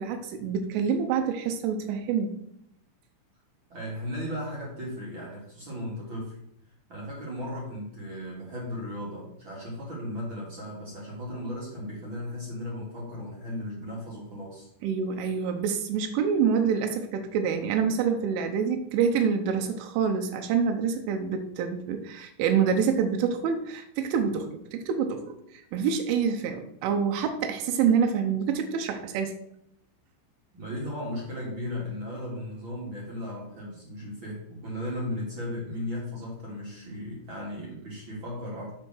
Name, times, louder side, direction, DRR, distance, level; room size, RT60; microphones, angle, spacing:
voice 1, 0.0-2.3 14.8-29.3, right 6 dB, 90° right, 5 dB, 3.2 m, -27 dB
voice 2, 3.7-6.4 6.9-14.7 30.5-38.7, left 1 dB, 50° right, -4 dB, 1.4 m, -36 dB
8.8 x 4.4 x 6.2 m, 0.74 s
omnidirectional pair, 5.6 m